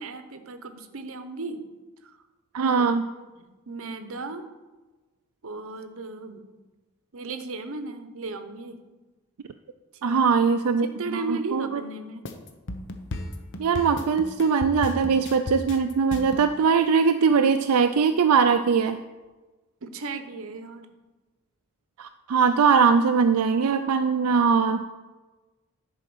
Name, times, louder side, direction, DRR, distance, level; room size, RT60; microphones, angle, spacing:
voice 1, 0.0-1.7 2.0-2.2 2.6-4.5 5.4-6.5 7.1-8.8 9.9-10.5 10.8-12.3 19.8-20.9, right 3 dB, 65° right, 9 dB, 0.9 m, -36 dB
voice 2, 2.5-3.0 10.0-10.9 11.5-11.7 13.6-19.0 22.0-24.8, right 5 dB, 85° right, 6 dB, 0.4 m, -21 dB
sound 1, 12.2-16.5, left 2 dB, 55° left, 0.9 m, -34 dB
10.5 x 4.8 x 6.1 m, 1.2 s
head